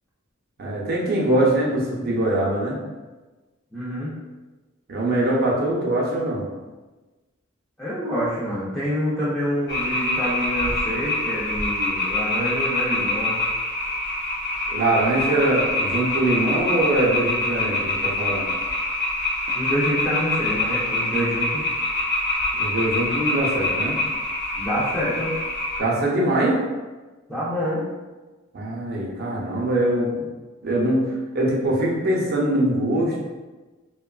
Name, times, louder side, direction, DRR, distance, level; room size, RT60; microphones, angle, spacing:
voice 1, 0.6-2.8 4.9-6.4 14.7-18.5 22.6-24.0 25.8-26.6 28.5-30.1 30.6-33.2, right 1 dB, 50° right, -3 dB, 0.6 m, -22 dB
voice 2, 3.7-4.1 7.8-13.4 19.5-21.6 24.5-25.3 27.3-27.9, equal, 5° left, -11 dB, 0.5 m, -27 dB
sound 1, 9.7-25.8, left 2 dB, 55° left, 0.7 m, -25 dB
2.9 x 2.2 x 2.3 m, 1.2 s
head